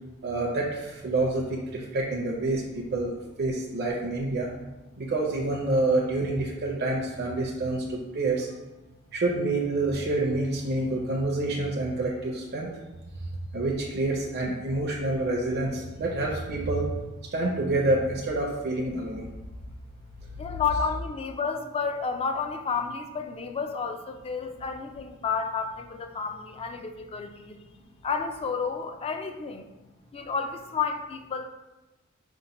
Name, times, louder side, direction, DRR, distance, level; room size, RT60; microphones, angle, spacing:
voice 1, 0.2-4.5 5.0-8.5 9.1-12.7 13.5-16.9 17.3-19.3, right 2 dB, 50° right, -1 dB, 0.5 m, -27 dB
voice 2, 20.4-27.6 28.0-29.7 30.1-31.4, left 5 dB, 30° left, 6 dB, 0.3 m, -31 dB
5.3 x 2.1 x 4.0 m, 1.1 s
head